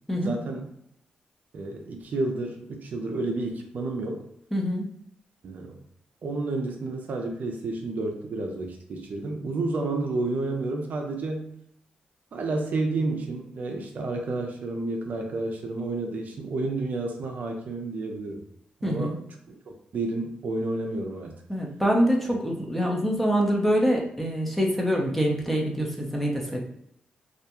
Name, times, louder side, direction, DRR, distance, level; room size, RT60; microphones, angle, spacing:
voice 1, 0.2-0.7 1.5-4.2 5.4-5.7 6.2-11.5 12.3-18.4 18.8-19.2 19.5-21.4, right 2 dB, 65° right, 2 dB, 0.5 m, -30 dB
voice 2, 4.5-4.9 18.8-19.2 21.5-26.6, equal, 5° left, -1 dB, 0.7 m, -25 dB
2.4 x 2.1 x 2.9 m, 0.71 s
cardioid pair, 60°, 3 cm